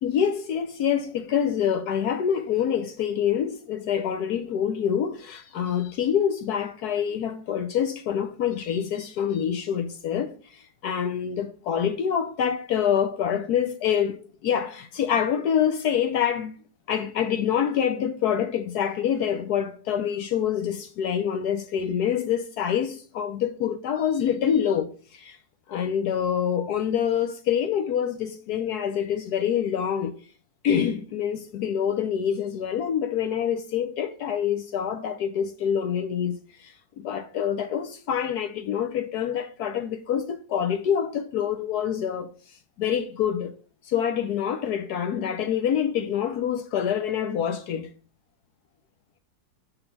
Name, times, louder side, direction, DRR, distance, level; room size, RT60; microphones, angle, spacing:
voice 1, 0.0-14.2 14.4-16.5 16.9-25.4 25.7-30.1 30.6-42.3 42.8-43.5 43.9-47.9, left 8 dB, 65° left, 1.1 m, -26 dB
5.8 x 5.3 x 5.8 m
omnidirectional pair, 2.0 m